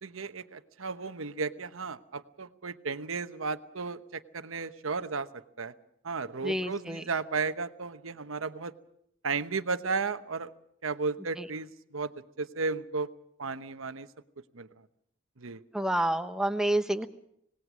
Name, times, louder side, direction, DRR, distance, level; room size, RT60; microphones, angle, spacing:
voice 1, 0.0-5.3 5.6-5.7 6.0-8.7 9.2-10.5 10.8-12.1 12.4-13.1 13.4-14.1 14.5-14.7 15.4-15.6, right 4 dB, 85° right, 11 dB, 1.1 m, -34 dB
voice 2, 6.4-7.1 11.4-11.5 15.7-17.1, right 1 dB, 5° right, 8 dB, 1.0 m, -29 dB
26.0 x 19.5 x 6.2 m, 0.73 s
head